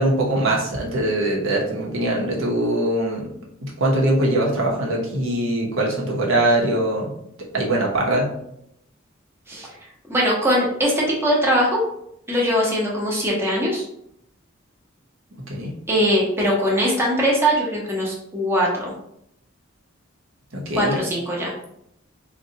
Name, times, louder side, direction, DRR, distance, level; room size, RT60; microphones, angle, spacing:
voice 1, 0.0-3.3 3.6-7.1 7.5-8.3 15.5-15.7 20.5-21.0, right 1 dB, 80° right, -2 dB, 0.8 m, -22 dB
voice 2, 10.1-11.8 12.3-13.8 15.9-18.9 20.7-21.5, equal, 10° right, -4 dB, 0.8 m, -21 dB
4.0 x 2.2 x 2.7 m, 0.74 s
head